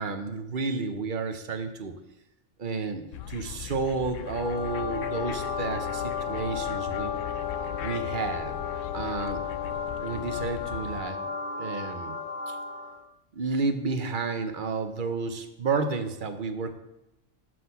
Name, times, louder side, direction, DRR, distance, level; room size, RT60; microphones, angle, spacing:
voice 1, 0.0-2.0 2.6-7.1 7.8-8.6 8.9-9.4 10.0-11.3 11.6-12.2 12.5-12.6 13.3-16.8, right 4 dB, 45° right, 7 dB, 0.8 m, -31 dB
sound 1, 3.1-11.0, left 9 dB, 75° left, 0.9 m, -40 dB
sound 2, 4.2-13.1, left 6 dB, 50° left, 0.7 m, -33 dB
7.6 x 6.1 x 5.5 m, 0.90 s
omnidirectional pair, 1.3 m